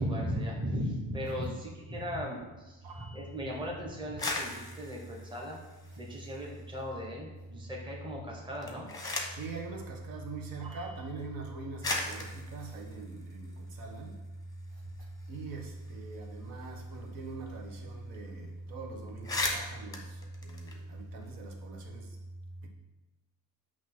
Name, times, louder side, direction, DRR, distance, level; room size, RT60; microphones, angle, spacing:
voice 1, 0.0-5.6 6.0-8.9, equal, 10° right, 1.2 m, -37 dB
voice 2, 2.8-3.3 9.3-14.2 15.3-22.2 22.6-22.7, right 3 dB, 60° right, 1.4 m, -41 dB
sound 1, 4.0-6.6 7.0-7.6 8.4-9.5 10.6-10.7 11.4-11.5 11.8-14.1 14.5-14.6 14.8-17.5 17.7-17.8 18.1-18.4 18.7-18.8 19.1-21.3, left 2 dB, 10° left, 1.0 m, -38 dB
8.4 x 3.1 x 6.1 m
cardioid pair, 150°, 39 cm